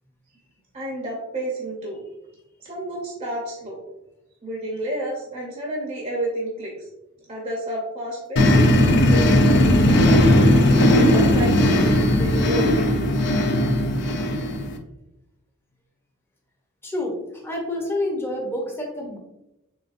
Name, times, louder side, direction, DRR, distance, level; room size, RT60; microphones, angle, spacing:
voice 1, 0.7-2.0 2.6-3.8 4.4-6.7 7.3-8.7 9.1-9.8 10.0-10.5 10.9-12.9, right 1 dB, 30° right, -3 dB, 0.7 m, -30 dB
sound 1, 8.4-14.8, left 1 dB, 55° left, 0.5 m, -17 dB
voice 2, 16.8-19.2, left 1 dB, 10° left, -1 dB, 0.7 m, -28 dB
4.0 x 3.3 x 2.5 m, 0.91 s
head